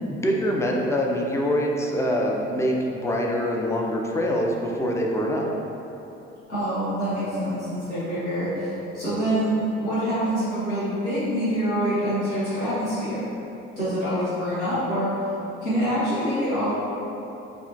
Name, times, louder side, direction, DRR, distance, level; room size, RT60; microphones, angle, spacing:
voice 1, 0.0-5.5, equal, 10° left, -1 dB, 0.4 m, -24 dB
voice 2, 6.5-13.2 13.8-15.1 15.6-16.7, equal, 80° left, -12 dB, 1.0 m, -25 dB
5.3 x 2.4 x 2.6 m, 2.9 s
figure-of-eight pair, 50°, 35 cm